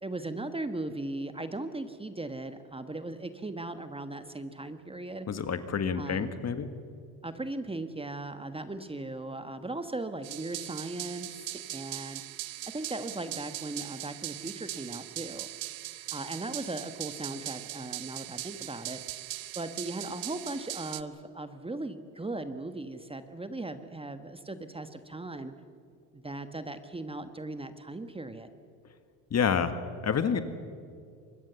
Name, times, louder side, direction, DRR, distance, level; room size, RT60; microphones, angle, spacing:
voice 1, 0.0-5.3 5.9-6.3 7.2-12.2 12.7-15.5 16.1-19.0 19.5-25.5 26.1-28.5, right 2 dB, 15° right, 9 dB, 1.4 m, -38 dB
voice 2, 5.3-6.7 29.3-29.8 30.0-30.4, left 7 dB, 35° left, 10 dB, 1.7 m, -28 dB
sound 1, 10.2-21.0, right 15 dB, 55° right, 1.0 m, -40 dB
25.0 x 20.5 x 7.0 m, 2.3 s
supercardioid pair, 80°, 42 cm